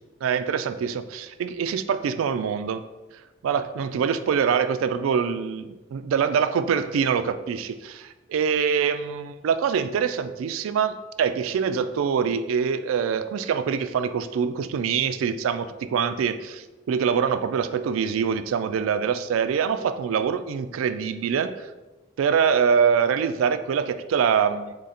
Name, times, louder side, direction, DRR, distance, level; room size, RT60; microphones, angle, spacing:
voice 1, 0.2-2.8 3.4-21.7 22.2-24.7, right 7 dB, 85° right, 13 dB, 0.3 m, -24 dB
3.8 x 3.2 x 4.2 m, 1.1 s
head